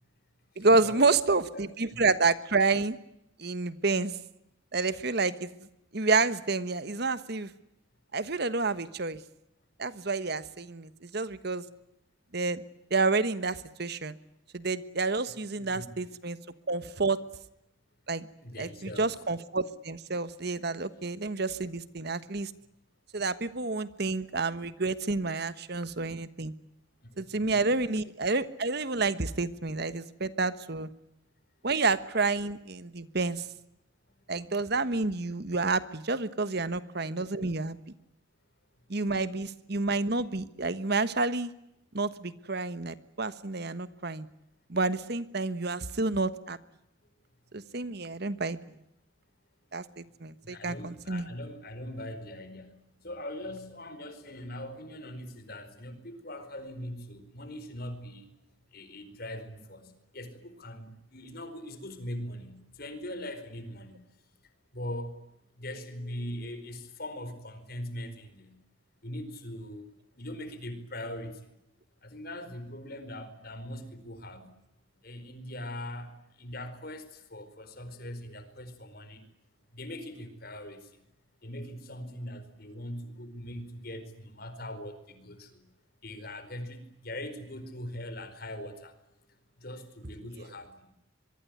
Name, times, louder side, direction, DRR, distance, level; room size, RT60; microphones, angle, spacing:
voice 1, 0.6-3.0 3.4-4.1 4.7-5.5 5.9-7.5 8.1-9.2 9.8-11.6 12.3-12.6 12.9-14.2 14.5-16.4 16.7-17.2 18.1-18.3 18.6-22.5 23.1-26.5 27.2-30.9 31.6-33.5 34.3-37.8 38.9-41.5 41.9-44.3 44.7-46.6 47.5-48.6 49.7-51.3, right 3 dB, 55° right, 14 dB, 1.3 m, -29 dB
voice 2, 1.5-2.0 15.6-16.1 18.4-19.1 27.5-27.8 50.4-52.7 53.0-58.2 58.7-59.9 60.1-64.0 64.7-65.1 65.6-68.5 69.0-69.8 70.2-71.4 72.0-74.5 75.0-76.1 76.4-79.2 79.7-80.8 81.4-85.6 86.0-88.9 89.6-90.9, left 1 dB, 50° left, 11 dB, 5.0 m, -41 dB
24.5 x 23.5 x 9.6 m, 0.82 s
head